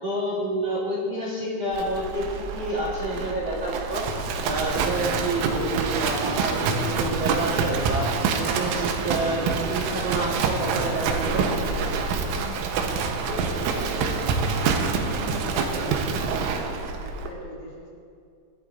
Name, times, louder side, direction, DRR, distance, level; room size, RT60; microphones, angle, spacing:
voice 1, 0.0-4.0 4.4-8.1 8.4-11.4, right 1 dB, 45° right, -6 dB, 3.1 m, -28 dB
Livestock farm animals working animals, 1.7-17.3, right 5 dB, 85° right, 3.4 m, -26 dB
sound 1, 4.4-13.0, left 1 dB, 45° left, 4.0 m, -41 dB
voice 2, 13.3-16.9 17.2-17.9, left 2 dB, 80° left, -5 dB, 5.4 m, -39 dB
24.5 x 12.0 x 2.6 m, 2.3 s
omnidirectional pair, 5.8 m